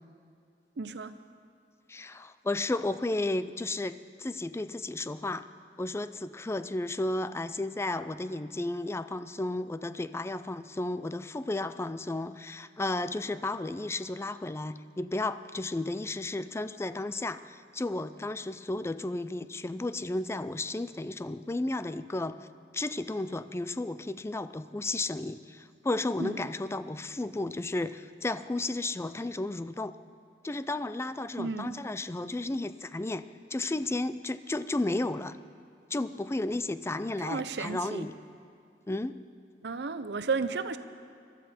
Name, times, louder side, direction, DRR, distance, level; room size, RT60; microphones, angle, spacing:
voice 1, 0.8-1.1 26.2-26.3 31.4-31.8 37.2-38.1 39.6-40.8, right 4 dB, 70° right, 0.7 m, -33 dB
voice 2, 1.9-5.4 5.8-22.5 22.7-29.9 30.4-33.2 33.5-35.4 35.9-38.1 38.9-39.2, left 2 dB, 15° left, 0.4 m, -33 dB
22.0 x 12.5 x 4.4 m
head